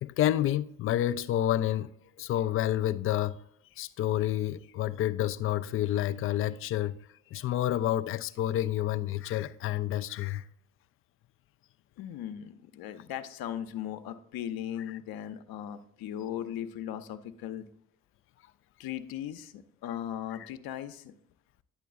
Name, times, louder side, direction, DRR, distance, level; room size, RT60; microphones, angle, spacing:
voice 1, 0.0-1.9 2.2-3.4 3.8-7.0 7.3-10.4, left 12 dB, 30° left, 0.4 m, -29 dB
voice 2, 12.0-17.7 18.8-21.2, left 10 dB, 50° left, 0.8 m, -38 dB
9.8 x 7.1 x 2.4 m
figure-of-eight pair, 45°, 46 cm